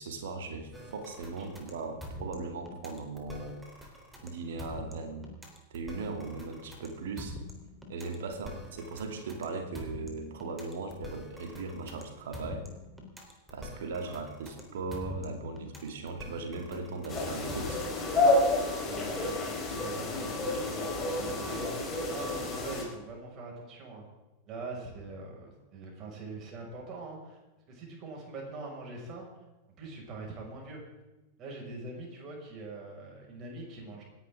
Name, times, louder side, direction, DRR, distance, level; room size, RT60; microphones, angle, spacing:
voice 1, 0.0-3.6 4.2-5.3 5.7-7.4 7.9-12.7 13.5-17.8, right 3 dB, 60° right, 5 dB, 2.7 m, -38 dB
sound 1, 0.7-18.1, left 1 dB, 5° right, 3.7 m, -45 dB
sound 2, 17.1-22.8, left 2 dB, 20° left, 4.7 m, -29 dB
voice 2, 18.9-24.0 24.5-27.4 27.7-29.3 29.8-30.8 31.4-34.0, right 3 dB, 35° right, 0 dB, 5.8 m, -43 dB
28.0 x 11.0 x 3.7 m, 1.1 s
figure-of-eight pair, 90°, 0 cm